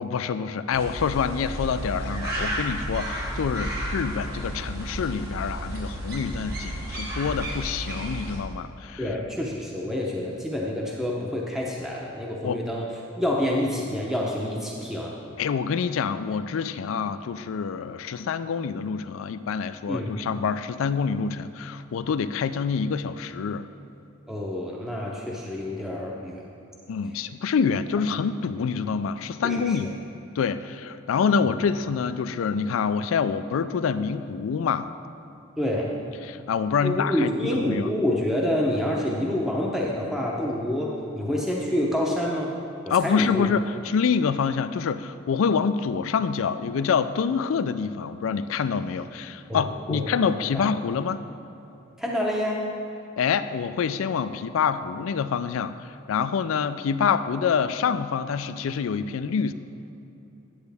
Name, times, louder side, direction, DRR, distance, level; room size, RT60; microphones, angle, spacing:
voice 1, 0.0-9.0 12.4-12.6 15.4-23.7 26.9-30.0 30.4-34.9 36.2-37.9 42.9-51.2 53.2-55.8 56.1-59.5, left 6 dB, 85° left, 13 dB, 0.4 m, -26 dB
sound 1, 0.7-8.4, right 1 dB, 50° right, 1.7 m, -32 dB
voice 2, 9.0-12.9 13.2-15.1 19.9-20.1 24.3-26.4 29.4-29.9 31.4-31.5 35.6-35.9 36.8-42.6 42.9-43.5 49.5-50.7 52.0-52.7, left 1 dB, ahead, -3 dB, 0.7 m, -28 dB
10.0 x 8.0 x 3.4 m, 2.9 s
head